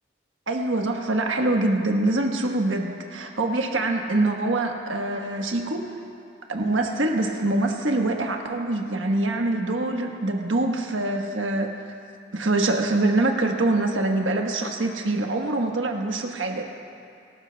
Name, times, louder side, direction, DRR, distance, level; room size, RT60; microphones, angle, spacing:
voice 1, 0.5-5.8 6.5-11.7 12.3-16.6, right 2 dB, 75° right, 2 dB, 1.3 m, -24 dB
24.5 x 12.5 x 2.3 m, 2.5 s
head